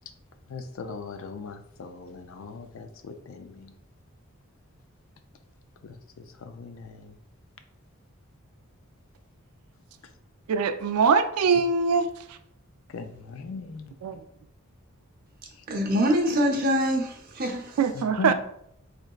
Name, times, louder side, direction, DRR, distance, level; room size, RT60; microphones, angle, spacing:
voice 1, 0.5-3.7 5.8-7.2 12.9-13.9 17.9-18.3, left 4 dB, 65° left, 8 dB, 0.4 m, -39 dB
voice 2, 10.5-12.1 14.0-14.2 17.8-18.3, right 5 dB, 90° right, 9 dB, 0.4 m, -22 dB
voice 3, 15.7-17.8, equal, 40° right, 1 dB, 0.7 m, -24 dB
3.8 x 3.2 x 2.4 m, 0.71 s
head